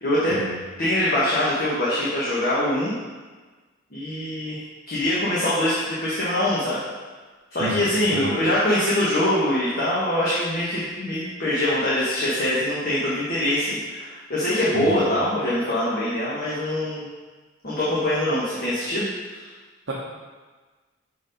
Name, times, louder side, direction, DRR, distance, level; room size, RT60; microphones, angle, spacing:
voice 1, 0.0-0.4 0.8-3.0 3.9-4.6 4.9-6.8 7.5-17.1 17.6-19.1 19.3-19.4, left 1 dB, 45° left, -8 dB, 1.2 m, -23 dB
voice 2, 7.6-8.3 14.7-15.1 19.9-20.0, right 1 dB, 60° right, -6 dB, 0.9 m, -30 dB
5.8 x 4.6 x 5.2 m, 1.4 s
head